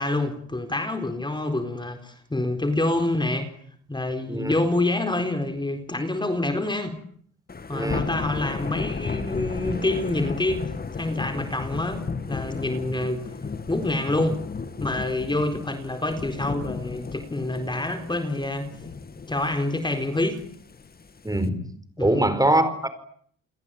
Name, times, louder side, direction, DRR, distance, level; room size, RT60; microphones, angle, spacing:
voice 1, 0.0-3.5 3.9-6.9 7.7-13.2 13.7-14.4 14.8-18.7 19.3-20.4 22.0-22.3, left 2 dB, 15° left, 4.1 m, -27 dB
Thunder / Rain, 7.5-21.5, left 4 dB, 30° left, 2.3 m, -34 dB
voice 2, 7.7-8.0 21.2-21.6 22.0-22.9, right 1 dB, 10° right, 4.9 m, -22 dB
29.5 x 22.0 x 9.2 m
cardioid pair, 90°, 30 cm